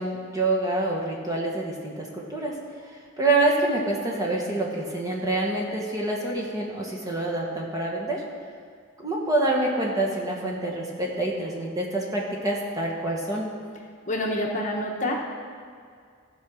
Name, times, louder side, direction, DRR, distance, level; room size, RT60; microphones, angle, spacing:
voice 1, 0.0-2.5 3.2-8.2 9.0-13.5, right 2 dB, 15° right, -3 dB, 1.3 m, -26 dB
voice 2, 14.1-15.1, left 1 dB, 35° left, -1 dB, 1.0 m, -27 dB
15.0 x 5.1 x 6.2 m, 2.1 s
head